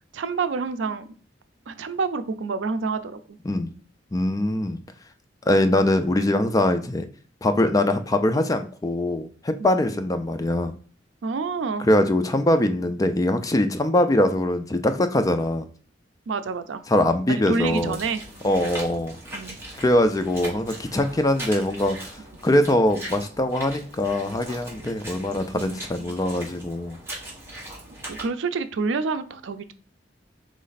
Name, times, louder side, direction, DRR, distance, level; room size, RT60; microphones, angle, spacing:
voice 1, 0.1-1.1 1.7-3.4 9.6-9.8 11.2-11.9 16.3-16.8 17.3-18.7 19.3-19.6 24.8-24.9 25.6-26.1 27.9-29.7, right 4 dB, 85° right, 11 dB, 0.4 m, -28 dB
voice 2, 4.1-4.8 5.5-7.1 7.4-10.7 11.8-15.7 16.9-18.0 18.4-19.2 19.8-22.0 22.4-27.0, left 1 dB, 20° left, 8 dB, 0.4 m, -22 dB
sound 1, 17.6-28.3, right 1 dB, 15° right, 1.2 m, -40 dB
4.2 x 3.2 x 4.0 m, 0.41 s
head